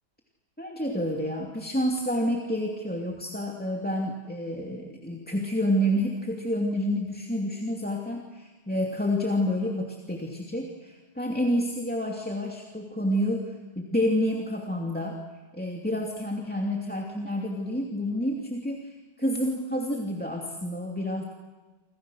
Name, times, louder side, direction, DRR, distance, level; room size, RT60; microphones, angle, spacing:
voice 1, 0.6-15.2 15.5-18.9 19.2-21.2, equal, 5° left, 1 dB, 2.5 m, -29 dB
29.0 x 27.0 x 6.4 m, 1.3 s
omnidirectional pair, 1.9 m